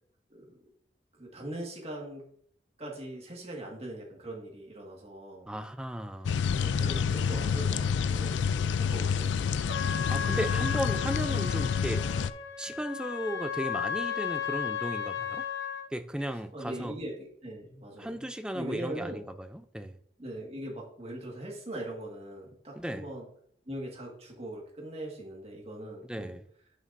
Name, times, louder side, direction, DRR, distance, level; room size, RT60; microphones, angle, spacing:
voice 1, 1.2-2.2 2.8-5.5 6.6-9.6 10.0-10.3 16.3-18.3 18.5-19.2 20.2-23.3 23.7-26.3, right 1 dB, 35° right, 1.8 m, -41 dB
voice 2, 5.5-6.4 10.1-12.0 12.6-15.4 15.9-16.9 18.0-19.9 22.7-23.1 26.1-26.4, right 1 dB, 5° right, 0.4 m, -35 dB
sound 1, 6.2-12.3, left 6 dB, 90° left, 0.4 m, -28 dB
Trumpet, 9.7-15.9, left 8 dB, 70° left, 1.1 m, -35 dB
11.0 x 6.2 x 2.6 m
head